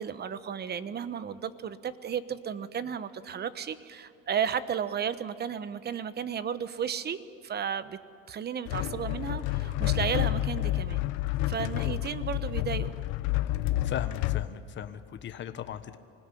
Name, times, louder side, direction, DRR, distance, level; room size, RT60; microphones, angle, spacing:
voice 1, 0.0-8.0 8.3-11.0 11.5-13.0, right 8 dB, 30° right, 13 dB, 1.1 m, -33 dB
sound 1, 8.7-14.5, left 16 dB, 70° left, 0.8 m, -29 dB
voice 2, 13.8-16.0, left 9 dB, 35° left, 9 dB, 1.2 m, -37 dB
25.0 x 17.0 x 9.9 m, 2.6 s
supercardioid pair, 115°, 31 cm